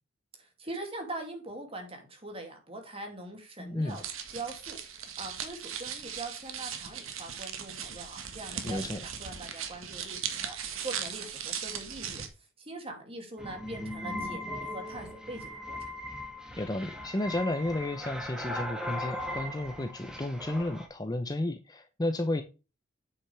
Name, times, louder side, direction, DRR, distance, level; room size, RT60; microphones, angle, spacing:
voice 1, 0.4-4.0 4.3-10.6 10.8-12.2 12.6-15.9, right 2 dB, 30° right, 2.5 m, -42 dB
voice 2, 3.6-4.0 8.6-9.0 16.6-22.4, left 1 dB, 20° left, 0.6 m, -32 dB
sound 1, 3.9-12.3, right 8 dB, 80° right, 1.6 m, -38 dB
sound 2, 13.4-20.9, left 1 dB, 5° right, 1.8 m, -39 dB
8.4 x 6.5 x 3.3 m
head